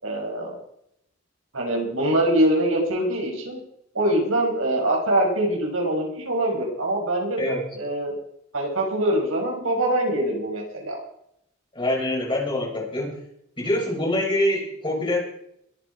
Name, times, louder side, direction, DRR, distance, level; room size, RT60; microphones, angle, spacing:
voice 1, 0.0-0.5 1.5-3.6 3.9-8.1 8.5-11.0, right 1 dB, 80° right, 0 dB, 6.1 m, -23 dB
voice 2, 11.7-13.2 13.6-15.2, left 1 dB, 25° left, -3 dB, 6.5 m, -25 dB
22.0 x 10.0 x 4.9 m, 0.73 s
head